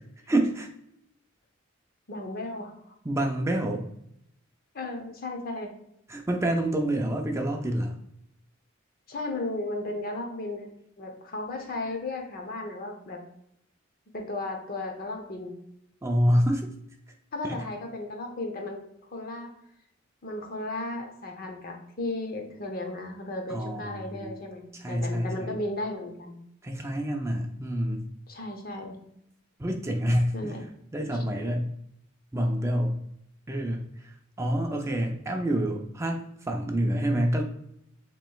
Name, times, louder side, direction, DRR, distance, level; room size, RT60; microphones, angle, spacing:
voice 1, 0.3-0.7 3.0-3.9 6.1-8.0 16.0-16.7 17.4-17.6 23.5-24.4 24.7-25.6 26.6-28.1 29.6-30.5 30.9-31.7 32.3-33.0 33.5-37.4, right 1 dB, 15° right, 2 dB, 0.4 m, -27 dB
voice 2, 2.1-2.9 4.7-5.7 9.1-10.7 11.0-13.2 14.1-15.5 17.3-18.8 19.1-19.5 20.2-26.4 28.3-29.0 30.3-30.6, left 2 dB, 45° left, 4 dB, 0.8 m, -35 dB
7.4 x 3.0 x 2.3 m, 0.75 s
head